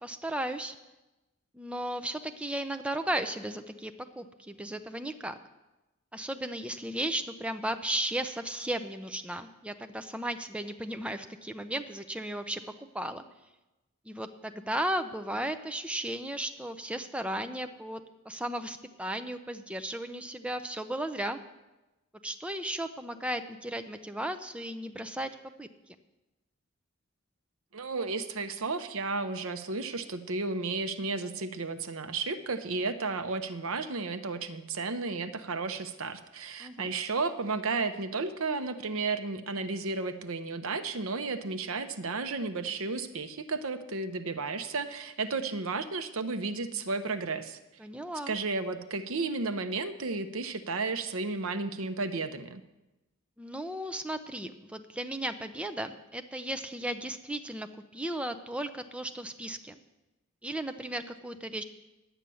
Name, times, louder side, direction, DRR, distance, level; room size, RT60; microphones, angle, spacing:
voice 1, 0.0-0.8 1.5-5.4 6.1-13.2 14.1-21.4 22.2-25.3 25.6-25.7 36.6-36.9 47.8-48.4 53.4-59.8 60.4-61.6, right 1 dB, 5° right, 8 dB, 0.5 m, -35 dB
voice 2, 27.7-47.6 48.3-52.6, right 3 dB, 70° right, 10 dB, 0.8 m, -33 dB
11.0 x 8.9 x 7.0 m, 1.0 s
head